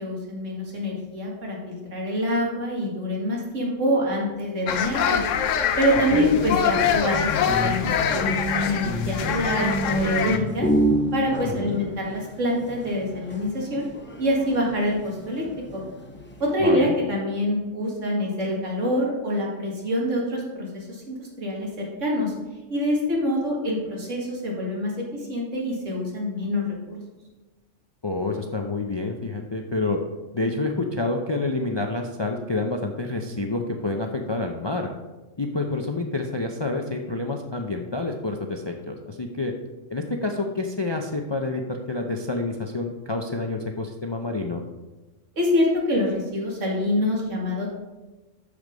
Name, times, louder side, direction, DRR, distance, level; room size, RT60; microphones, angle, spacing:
voice 1, 0.0-5.2 5.8-10.7 11.1-13.8 14.2-15.4 15.7-15.8 16.4-22.3 22.7-27.0 45.4-47.7, left 1 dB, 75° right, -2 dB, 2.3 m, -25 dB
sound 1, 4.7-10.4, left 8 dB, 80° left, 1.0 m, -24 dB
sound 2, 6.3-16.6, equal, 10° left, 0.7 m, -30 dB
voice 2, 11.4-11.8 16.6-16.9 28.0-30.0 30.3-34.9 35.4-39.5 39.9-44.6, left 2 dB, 40° left, 3 dB, 0.4 m, -28 dB
6.8 x 6.6 x 5.1 m, 1.1 s
omnidirectional pair, 1.3 m